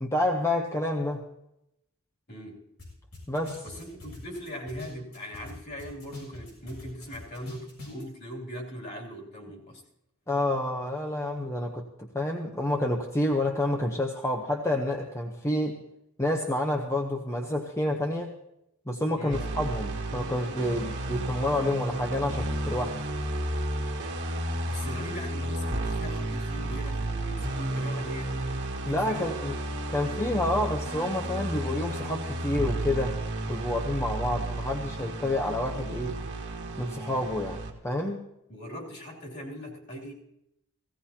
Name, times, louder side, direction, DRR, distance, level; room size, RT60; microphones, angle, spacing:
voice 1, 0.0-1.2 3.3-3.6 10.3-15.8 16.2-18.3 18.9-23.0 28.9-29.6 29.9-33.2 33.5-36.2 36.8-38.2, left 1 dB, 15° left, 0 dB, 0.8 m, -29 dB
voice 2, 2.3-2.6 3.6-9.8 19.2-19.5 24.6-28.5 28.8-29.3 38.5-40.1, equal, 50° left, -2 dB, 3.0 m, -40 dB
sound 1, 2.8-2.9 3.1-5.5 5.8-8.0, left 2 dB, 85° left, 7.0 m, -44 dB
sound 2, 19.3-37.7, right 1 dB, 55° right, 1.6 m, -32 dB
17.0 x 16.5 x 2.9 m, 0.83 s
head